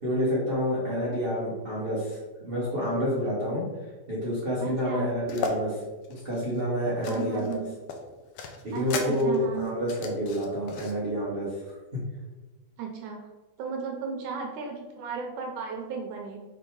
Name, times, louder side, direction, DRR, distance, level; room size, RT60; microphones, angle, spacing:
voice 1, 0.0-2.2 2.4-3.6 4.1-5.8 6.1-7.6 8.6-11.6 11.9-12.0, equal, 55° right, -8 dB, 0.6 m, -28 dB
voice 2, 4.6-5.1 7.1-7.8 8.7-9.7 12.8-13.2 13.6-16.4, right 5 dB, 75° right, 1 dB, 2.1 m, -35 dB
sound 1, 5.3-5.6 6.0-7.6 7.9-10.9, left 5 dB, 85° left, 1.4 m, -36 dB
6.0 x 3.5 x 4.7 m, 1.2 s
omnidirectional pair, 3.7 m